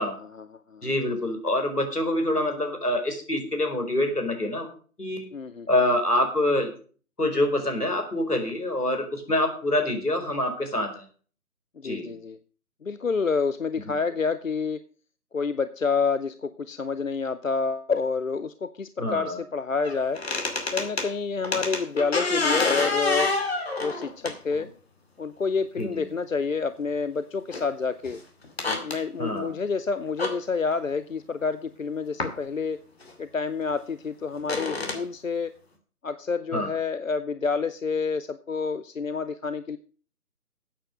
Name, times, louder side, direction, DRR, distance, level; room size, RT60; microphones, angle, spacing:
voice 1, 0.0-1.1 5.3-5.7 11.8-12.4 12.8-14.8 15.3-20.2 20.7-23.4 23.8-24.7 25.2-28.2 28.8-32.8 33.2-35.5 36.0-39.8, left 5 dB, 60° left, 13 dB, 0.7 m, -28 dB
voice 2, 0.8-4.7 5.0-5.3 5.7-6.7 7.2-11.0 11.8-12.1 19.0-19.4 25.8-26.0 29.2-29.5 36.5-36.7, left 1 dB, 80° left, 4 dB, 4.9 m, -26 dB
sound 1, 19.8-21.1 21.4-24.7 25.8-25.9 27.5-27.7 28.0-28.2 28.4-29.0 30.2-30.3 32.2-32.3 33.0-33.1 34.4-35.0, left 3 dB, 40° left, 2.5 m, -27 dB
14.0 x 8.9 x 5.2 m, 0.41 s
figure-of-eight pair, 155°, 45 cm